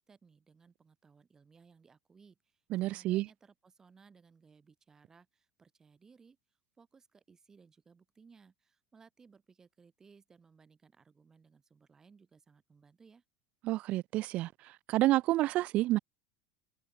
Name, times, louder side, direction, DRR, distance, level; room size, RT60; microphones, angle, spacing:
voice 1, 0.0-13.2, right 5 dB, 15° right, 5.5 m, -62 dB
voice 2, 2.7-3.3 13.6-14.5 14.9-16.0, right 16 dB, 45° right, 0.3 m, -29 dB
supercardioid pair, 145°, 3 cm